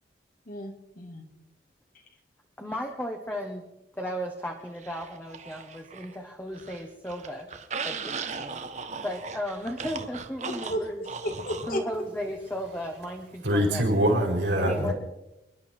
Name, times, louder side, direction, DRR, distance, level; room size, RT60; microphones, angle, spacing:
voice 1, 0.5-1.2 10.4-10.9 11.2-11.8 14.6-14.9, equal, 50° left, 4 dB, 2.3 m, -33 dB
voice 2, 2.6-3.6 3.9-7.5 7.8-8.6 9.0-11.0 11.7-14.1 14.6-14.9, equal, 10° left, 2 dB, 1.4 m, -35 dB
sound 1, 4.8-6.2 6.5-11.8, right 5 dB, 40° right, 1.2 m, -38 dB
voice 3, 13.4-14.9, equal, 80° right, 1 dB, 4.5 m, -24 dB
28.0 x 11.0 x 4.5 m, 0.96 s
head